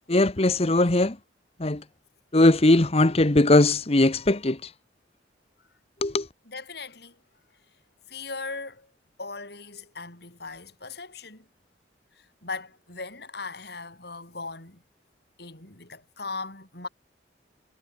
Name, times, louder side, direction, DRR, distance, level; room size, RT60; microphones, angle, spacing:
voice 1, 0.1-1.2 1.6-1.8 2.3-4.7 6.0-6.3, left 2 dB, 35° left, 1.1 m, -20 dB
voice 2, 6.5-7.2 8.1-8.9 9.2-11.5 12.2-14.8 15.4-16.9, left 3 dB, 60° left, 7.2 m, -38 dB
head